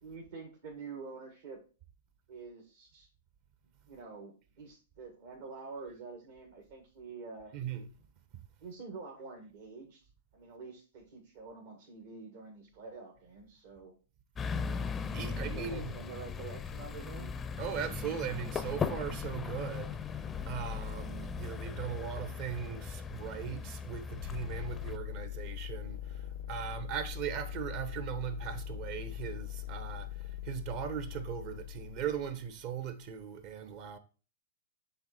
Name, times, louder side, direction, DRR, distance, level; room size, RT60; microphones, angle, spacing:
voice 1, 0.0-1.6 2.3-3.1 3.9-7.5 8.6-10.1 10.3-13.9 15.1-17.3 20.5-20.8, right 4 dB, 60° right, 1.6 m, -47 dB
voice 2, 7.5-7.9 15.1-16.0 17.6-34.0, right 8 dB, 45° right, 1.0 m, -39 dB
sound 1, 14.4-25.0, left 6 dB, 20° left, 0.5 m, -38 dB
sound 2, 24.1-32.8, left 11 dB, 70° left, 0.5 m, -42 dB
7.8 x 3.4 x 4.1 m
hypercardioid pair, 120°, 0 cm